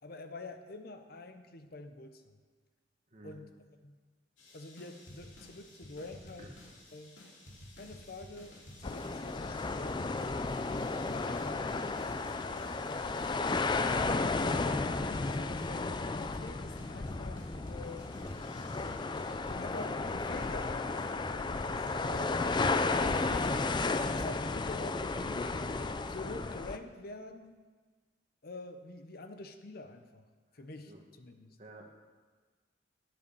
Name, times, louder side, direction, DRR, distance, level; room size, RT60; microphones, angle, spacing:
voice 1, 0.0-2.4 3.2-3.5 3.8-4.0 4.5-6.5 6.9-7.2 7.8-13.6 14.4-18.1 19.5-22.6 24.0-25.7 26.1-27.6 28.4-30.2 30.5-30.9 31.2-31.6, left 2 dB, 55° left, 7 dB, 0.7 m, -47 dB
voice 2, 3.1-3.4 6.4-6.6 22.0-22.4 30.5-31.0 31.6-32.0, right 1 dB, 40° right, 2 dB, 1.5 m, -51 dB
sound 1, 4.4-24.2, equal, 90° left, 2.6 m, -51 dB
sound 2, 8.8-26.8, left 3 dB, 25° left, 0.4 m, -33 dB
10.5 x 8.4 x 6.9 m, 1.4 s
head